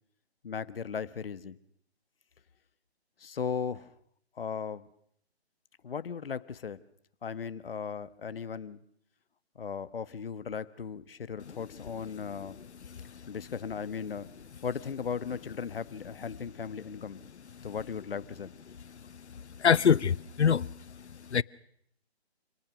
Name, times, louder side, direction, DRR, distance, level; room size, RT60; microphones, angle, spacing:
voice 1, 0.4-1.6 3.2-3.9 4.4-4.9 5.8-6.8 7.2-8.8 9.5-12.6 13.3-14.3 14.6-17.2 17.6-18.5, left 6 dB, 60° left, 1.2 m, -37 dB
voice 2, 19.6-20.7 21.3-21.4, left 7 dB, 85° left, 0.8 m, -23 dB
27.0 x 18.5 x 6.2 m
hypercardioid pair, 160°, 33 cm